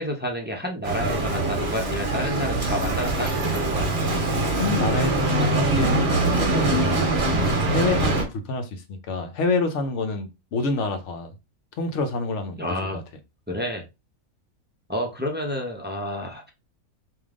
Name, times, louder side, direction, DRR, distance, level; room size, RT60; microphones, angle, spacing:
voice 1, 0.0-3.9 12.6-13.0 13.5-13.9 14.9-16.5, equal, 15° right, 0.4 m, -29 dB
Bicycle, 0.8-8.2, right 2 dB, 45° right, 1.4 m, -23 dB
voice 2, 4.6-7.0 7.3-11.3 11.8-13.0, left 3 dB, 60° left, 1.0 m, -27 dB
3.5 x 2.7 x 3.6 m
omnidirectional pair, 1.5 m